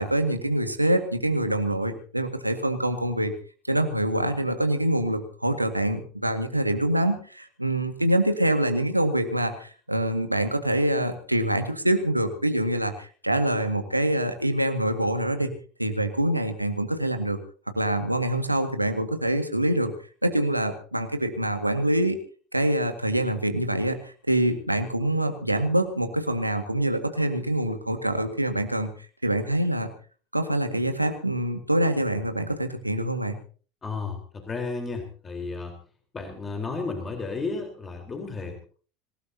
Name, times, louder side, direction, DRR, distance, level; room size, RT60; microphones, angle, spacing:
voice 1, 0.0-3.3 3.7-15.5 15.8-17.4 17.7-19.9 20.2-22.2 22.5-28.9 29.2-29.9 30.3-33.4, right 1 dB, 90° right, 7 dB, 1.8 m, -25 dB
voice 2, 33.8-35.7 36.1-38.7, left 4 dB, 25° left, 3 dB, 4.1 m, -33 dB
26.0 x 17.5 x 2.9 m, 0.41 s
figure-of-eight pair, 75°, 0 cm